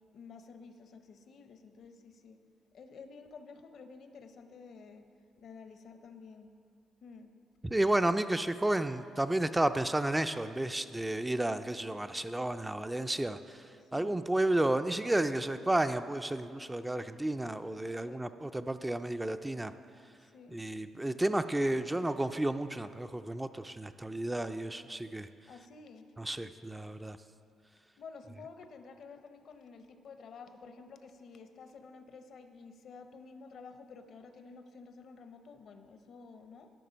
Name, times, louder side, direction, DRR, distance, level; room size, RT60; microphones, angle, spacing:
voice 1, 0.1-2.4 2.7-5.0 5.4-6.5 7.0-7.3 13.9-14.2 18.0-18.3 20.3-20.6 25.5-26.0 28.0-36.7, left 4 dB, 65° left, 8 dB, 0.6 m, -51 dB
voice 2, 7.6-13.6 13.9-19.7 20.5-25.3 26.2-27.2, right 1 dB, 10° right, 10 dB, 0.3 m, -32 dB
12.5 x 5.4 x 5.1 m, 2.4 s
cardioid pair, 90°, 0 cm